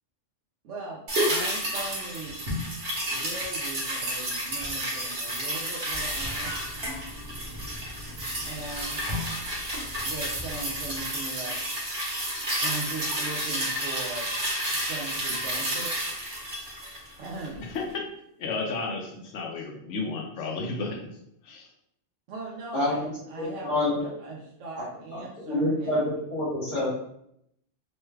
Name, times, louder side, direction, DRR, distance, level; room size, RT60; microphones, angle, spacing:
voice 1, 0.6-2.4 3.1-6.6 8.4-9.1 10.0-11.5 12.6-14.3 14.8-16.1 17.2-17.6 22.3-26.0, right 3 dB, 85° right, -4 dB, 1.0 m, -39 dB
sound 1, 1.1-17.6 17.9-18.0, equal, 55° right, 1.1 m, -31 dB
sound 2, 5.9-11.0, equal, 30° right, 0.7 m, -41 dB
voice 2, 17.6-18.0 18.4-21.1 21.4-21.7, left 3 dB, 85° left, 2 dB, 1.0 m, -33 dB
voice 3, 22.7-23.1 23.4-24.1 25.1-26.9, left 1 dB, 50° left, -8 dB, 0.9 m, -27 dB
3.1 x 2.2 x 3.2 m, 0.75 s
omnidirectional pair, 1.2 m